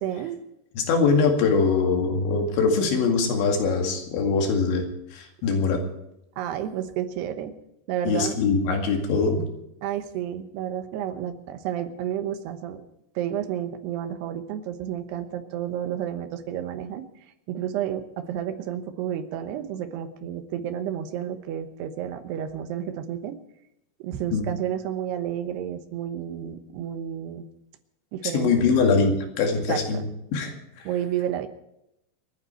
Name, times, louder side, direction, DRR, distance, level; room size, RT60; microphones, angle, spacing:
voice 1, 0.0-0.4 6.4-7.5 7.9-8.4 9.8-12.8 13.2-17.0 17.5-23.4 24.0-27.5 28.1-28.7 29.7-30.1 30.8-31.5, right 10 dB, 75° right, 8 dB, 3.1 m, -31 dB
voice 2, 0.8-4.8 5.1-5.8 8.0-9.4 24.3-24.4 28.2-30.0 30.3-30.9, left 4 dB, 80° left, 3 dB, 4.5 m, -22 dB
28.0 x 9.8 x 4.5 m, 0.82 s
omnidirectional pair, 5.1 m